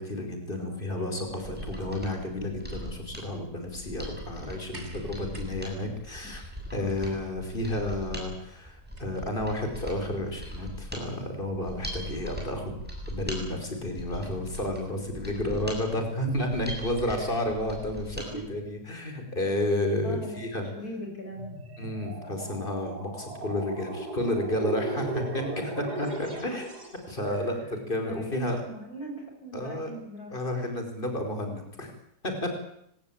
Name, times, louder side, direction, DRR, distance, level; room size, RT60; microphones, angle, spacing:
voice 1, 0.0-12.8 13.1-20.7 21.8-25.4 26.0-26.7 27.1-28.6 29.5-29.9 30.3-31.9 32.2-32.5, left 1 dB, 30° left, 5 dB, 5.1 m, -31 dB
voice 2, 0.6-1.5 6.7-7.0 15.3-15.7 17.0-17.3 20.0-21.7 25.4-25.5 27.3-27.7 28.0-30.6, right 1 dB, 55° left, 1 dB, 8.4 m, -42 dB
Mechanisms, 1.3-18.3 18.6-18.7, equal, 5° right, 7.8 m, -40 dB
sound 1, 4.7-10.3 11.4-11.5, right 1 dB, 35° right, 4.0 m, -49 dB
sound 2, 21.3-27.1, right 2 dB, 60° right, 5.4 m, -36 dB
24.5 x 19.0 x 8.8 m, 0.75 s
omnidirectional pair, 1.9 m